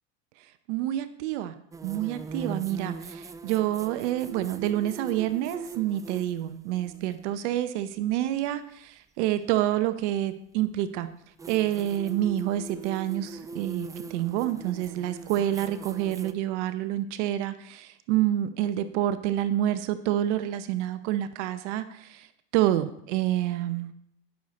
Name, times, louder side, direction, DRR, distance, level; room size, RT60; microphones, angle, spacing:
voice 1, 0.7-1.6 1.8-11.1 11.5-22.3 22.5-23.9, right 13 dB, 75° right, 11 dB, 0.9 m, -28 dB
sound 1, 1.7-7.2 9.3-9.4 11.4-16.3, right 4 dB, 10° right, 0.3 m, -41 dB
16.5 x 6.6 x 4.2 m, 0.72 s
supercardioid pair, 120°, 36 cm